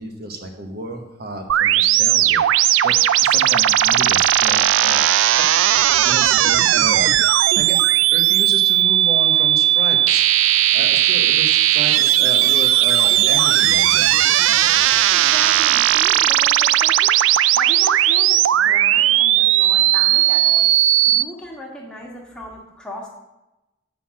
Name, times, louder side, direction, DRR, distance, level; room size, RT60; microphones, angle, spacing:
voice 1, 0.0-2.4 2.8-5.5 6.0-7.2 7.5-14.1, right 1 dB, 50° right, 4 dB, 0.9 m, -32 dB
sound 1, 1.5-21.2, right 13 dB, 80° right, 0.3 m, -16 dB
voice 2, 15.1-17.2 17.5-20.7 21.0-23.1, equal, 5° left, -2 dB, 1.4 m, -37 dB
6.7 x 5.7 x 7.3 m, 0.96 s
head